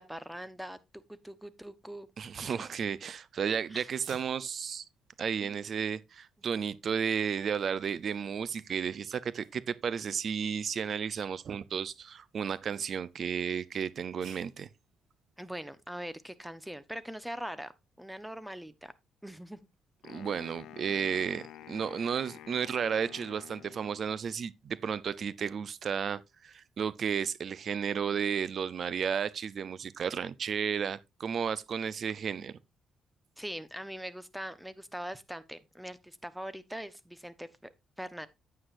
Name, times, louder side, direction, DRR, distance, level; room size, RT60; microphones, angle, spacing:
voice 1, 0.0-2.1 2.4-2.7 3.7-3.9 15.4-17.7 18.0-18.9 19.2-19.7 33.4-38.3, equal, 5° right, 1.0 m, -42 dB
voice 2, 2.2-4.8 5.2-14.7 20.1-32.6, right 7 dB, 55° right, 0.6 m, -33 dB
sound 1, 3.8-16.3, right 6 dB, 80° right, 5.0 m, -61 dB
Wind instrument woodwind instrument, 20.0-24.3, left 11 dB, 85° left, 0.9 m, -50 dB
9.4 x 8.7 x 2.6 m
cardioid pair, 90°, 0 cm